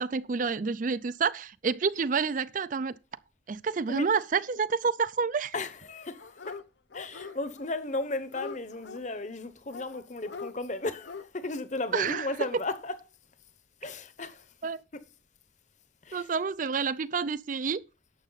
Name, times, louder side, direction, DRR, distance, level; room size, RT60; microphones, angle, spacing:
voice 1, 0.0-2.9 3.5-5.5 11.9-12.3 14.6-14.8 16.1-17.8, right 5 dB, 40° right, 0.4 m, -29 dB
voice 2, 5.5-6.6 6.9-13.0 13.8-14.4 14.9-15.0 16.0-16.3, left 2 dB, 40° left, 1.0 m, -35 dB
Dog, 6.2-6.6 6.9-7.7 8.0-9.0 9.7-10.5 11.0-11.3 11.8-12.3 12.6-12.7, left 4 dB, 60° left, 0.7 m, -42 dB
11.5 x 7.4 x 4.0 m
head